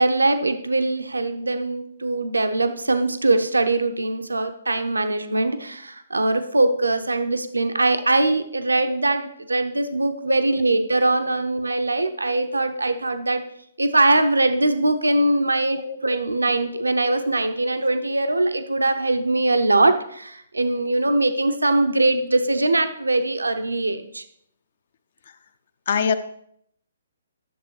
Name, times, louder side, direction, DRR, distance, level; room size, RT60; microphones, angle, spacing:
voice 1, 0.0-13.4 13.8-24.2, right 2 dB, 80° right, 8 dB, 0.7 m, -22 dB
voice 2, 11.3-11.4 15.8-16.0 16.4-16.5 16.7-16.9 25.9-26.2, left 6 dB, 50° left, 11 dB, 0.7 m, -25 dB
11.0 x 6.9 x 3.2 m, 0.71 s
figure-of-eight pair, 130°, 0 cm